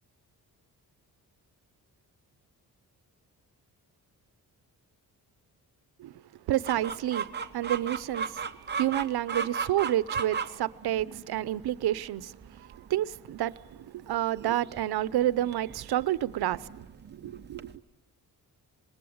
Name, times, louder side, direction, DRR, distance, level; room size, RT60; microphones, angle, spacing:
voice 1, 6.5-7.2 7.5-8.2 8.8-12.3 12.9-13.5 14.1-16.6 17.2-17.7, right 13 dB, 85° right, 0.8 m, -29 dB
Chicken rooster, 6.7-17.8, right 6 dB, 30° right, 0.9 m, -37 dB
27.0 x 20.5 x 8.7 m
wide cardioid pair, 180°, 37 cm